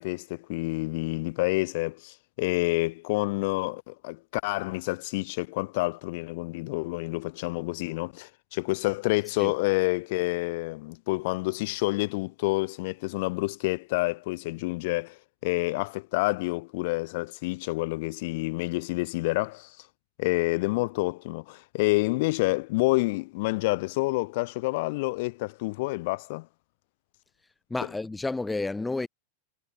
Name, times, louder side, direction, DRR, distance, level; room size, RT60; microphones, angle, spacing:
voice 1, 0.0-19.8 20.2-26.5, left 23 dB, 50° left, 1.7 m, -28 dB
voice 2, 27.7-29.1, left 3 dB, 10° left, 1.0 m, -30 dB
figure-of-eight pair, 90°, 0 cm